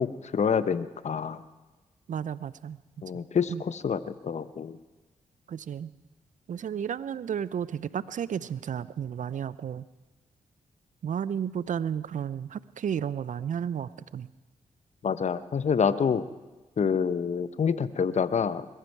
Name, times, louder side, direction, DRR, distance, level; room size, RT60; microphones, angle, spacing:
voice 1, 0.0-1.4 3.0-4.8 15.0-16.2 16.8-18.7, left 6 dB, 50° left, 14 dB, 0.9 m, -27 dB
voice 2, 2.1-2.8 3.5-3.6 5.5-5.9 6.5-9.8 11.0-14.3, right 8 dB, 60° right, 18 dB, 0.6 m, -32 dB
21.0 x 14.5 x 4.7 m, 1.2 s
supercardioid pair, 45°, 15 cm